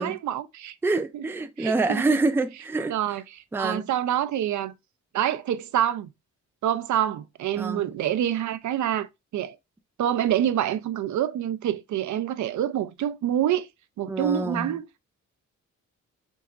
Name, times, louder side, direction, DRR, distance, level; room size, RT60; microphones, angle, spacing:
voice 1, 0.0-0.7 1.1-1.2 1.6-2.0 2.9-3.2 3.6-4.7 5.1-6.1 6.6-9.1 9.3-9.6 10.0-13.7 14.0-15.0, right 11 dB, 70° right, 0.5 m, -26 dB
voice 2, 0.8-2.9 3.5-3.9 7.6-7.8 14.1-14.8, right 3 dB, 5° right, 0.4 m, -26 dB
4.6 x 2.9 x 2.4 m
cardioid pair, 125°, 31 cm